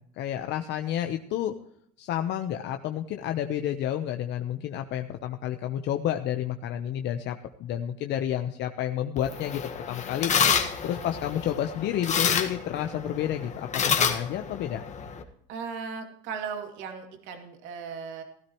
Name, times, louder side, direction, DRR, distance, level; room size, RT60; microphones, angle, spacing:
voice 1, 0.2-1.5 2.0-9.6 9.9-10.3 10.8-14.8, left 11 dB, 60° left, 6 dB, 1.0 m, -30 dB
sound 1, 9.2-15.2, left 6 dB, 35° left, 1.7 m, -28 dB
voice 2, 15.5-18.2, right 6 dB, 65° right, 4 dB, 2.7 m, -37 dB
16.5 x 13.0 x 3.1 m, 0.68 s
supercardioid pair, 105°, 21 cm